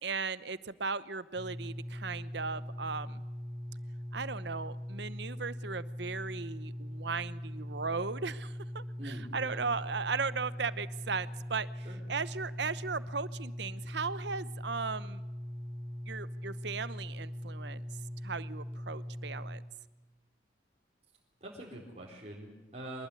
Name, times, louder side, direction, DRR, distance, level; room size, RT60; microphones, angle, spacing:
voice 1, 0.0-3.2 4.1-11.7 12.1-15.2 16.1-17.8 18.2-19.6, right 4 dB, 65° right, 16 dB, 0.9 m, -37 dB
sound 1, 1.3-19.6, equal, 10° right, 7.1 m, -41 dB
voice 2, 9.0-9.6 11.8-12.0 21.4-23.1, right 1 dB, 35° right, -3 dB, 4.3 m, -44 dB
24.5 x 20.5 x 10.0 m, 1.1 s
head